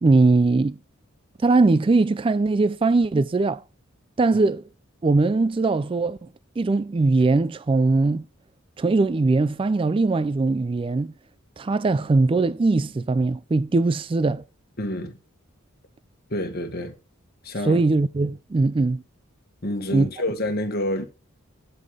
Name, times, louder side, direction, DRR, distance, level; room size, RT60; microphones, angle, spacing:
voice 1, 0.0-0.8 1.4-3.6 4.2-4.6 5.0-6.3 6.6-8.3 8.8-11.1 11.6-14.4 17.6-19.0 19.9-20.1, right 3 dB, 25° right, 0.3 m, -20 dB
voice 2, 14.8-15.2 16.3-17.0 17.4-17.9 19.6-21.0, left 1 dB, 45° left, 1.6 m, -28 dB
11.0 x 5.5 x 3.7 m
head